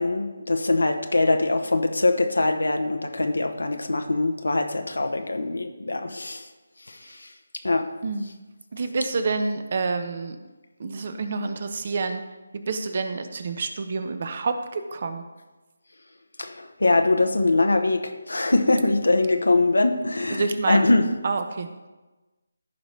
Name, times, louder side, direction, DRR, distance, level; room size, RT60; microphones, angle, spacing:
voice 1, 0.0-6.5 6.9-7.3 7.6-7.9 16.4-21.1, left 2 dB, 90° left, 5 dB, 0.8 m, -23 dB
voice 2, 8.7-10.4 10.8-12.2 12.5-15.2 20.3-20.9 21.2-21.7, right 4 dB, 45° right, 8 dB, 0.8 m, -28 dB
14.5 x 5.1 x 3.2 m, 1.1 s
figure-of-eight pair, 160°, 0 cm